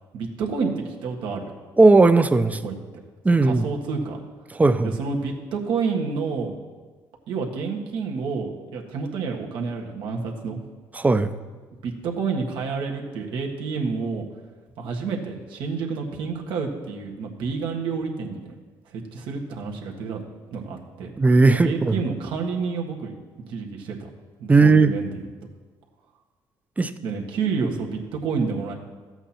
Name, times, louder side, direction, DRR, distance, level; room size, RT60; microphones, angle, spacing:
voice 1, 0.1-1.4 2.6-2.8 3.4-4.2 4.8-6.6 7.3-10.6 11.8-14.3 14.8-18.5 18.9-20.2 20.5-21.1 21.5-23.1 23.5-24.1 24.4-25.2 27.0-28.7, right 5 dB, 75° right, 1 dB, 1.6 m, -29 dB
voice 2, 1.8-2.6 3.2-3.7 4.5-5.0 10.9-11.3 21.2-22.0 24.5-24.9 26.8-26.9, right 3 dB, 20° right, 12 dB, 0.6 m, -17 dB
13.0 x 8.0 x 4.3 m, 1.4 s
supercardioid pair, 80°, 8 cm